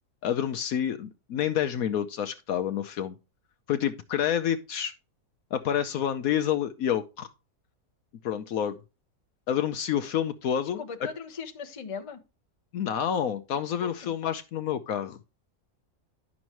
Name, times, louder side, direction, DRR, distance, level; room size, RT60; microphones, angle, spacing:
voice 1, 0.2-3.2 3.7-4.9 5.5-7.3 8.2-8.8 9.5-10.8 12.7-15.2, left 9 dB, 70° left, 1.0 m, -28 dB
voice 2, 10.8-12.2 13.8-14.1, left 5 dB, 25° left, 0.8 m, -38 dB
11.0 x 6.2 x 2.9 m
omnidirectional pair, 1.7 m